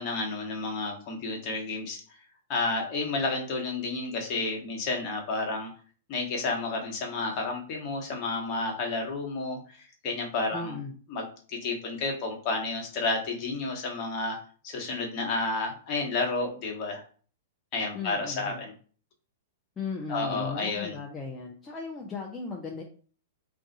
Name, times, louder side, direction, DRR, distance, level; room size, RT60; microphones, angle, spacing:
voice 1, 0.0-2.0 2.5-5.7 6.1-9.8 10.0-10.8 11.1-14.4 14.6-17.0 17.7-18.7 20.1-21.0, left 3 dB, 40° left, 1 dB, 1.0 m, -31 dB
voice 2, 10.5-10.9 17.9-18.6 19.8-22.8, left 4 dB, 20° left, -1 dB, 0.5 m, -36 dB
2.6 x 2.3 x 4.0 m, 0.42 s
hypercardioid pair, 110°, 0 cm